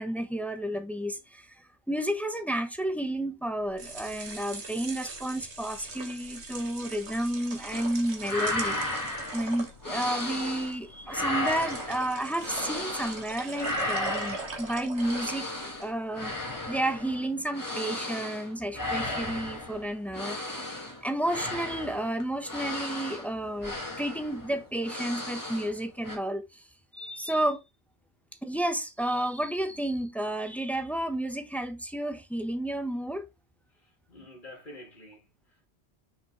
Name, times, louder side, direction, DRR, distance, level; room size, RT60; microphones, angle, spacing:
voice 1, 0.0-9.0 9.3-15.5 15.8-20.7 21.0-26.7 26.9-27.6 28.4-33.3, right 1 dB, ahead, 0.9 m, -31 dB
sound 1, 3.6-15.9, right 4 dB, 85° right, 1.8 m, -42 dB
sound 2, 7.7-10.8 11.0-13.3 13.5-25.8 26.0-26.2, left 1 dB, 20° left, 1.9 m, -35 dB
voice 2, 33.7-35.7, left 1 dB, 50° left, 2.3 m, -49 dB
6.0 x 5.4 x 3.1 m
omnidirectional pair, 1.1 m